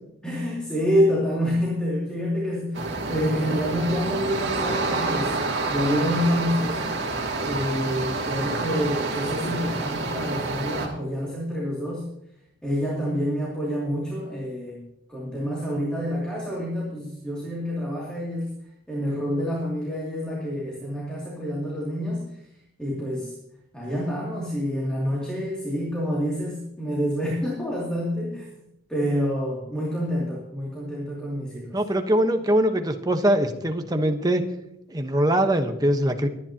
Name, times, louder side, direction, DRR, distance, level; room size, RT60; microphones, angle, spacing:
voice 1, 0.2-7.0 7.4-12.1 12.6-14.8 15.1-18.6 18.9-22.4 22.8-23.3 23.7-28.5 28.9-31.8, equal, 5° left, -5 dB, 2.7 m, -27 dB
sound 1, 2.7-10.9, right 3 dB, 60° right, 2.6 m, -28 dB
voice 2, 31.7-34.4 34.9-36.3, right 1 dB, 20° right, 6 dB, 1.1 m, -22 dB
23.5 x 10.0 x 2.9 m, 0.79 s
head